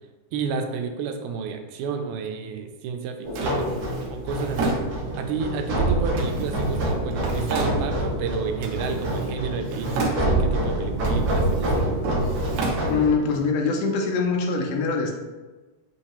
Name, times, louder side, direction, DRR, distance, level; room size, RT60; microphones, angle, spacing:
voice 1, 0.3-4.8 5.2-11.9, right 5 dB, 90° right, 5 dB, 2.1 m, -31 dB
sound 1, 3.2-13.1, right 1 dB, 55° right, 1.3 m, -26 dB
Drawer open or close, 3.4-5.4 6.1-8.2 8.6-9.4 9.6-10.6 11.0-13.4, right 3 dB, 70° right, 1.6 m, -32 dB
voice 2, 12.9-15.1, left 4 dB, 80° left, 1 dB, 2.1 m, -23 dB
6.5 x 2.8 x 2.9 m, 1.2 s
omnidirectional pair, 3.5 m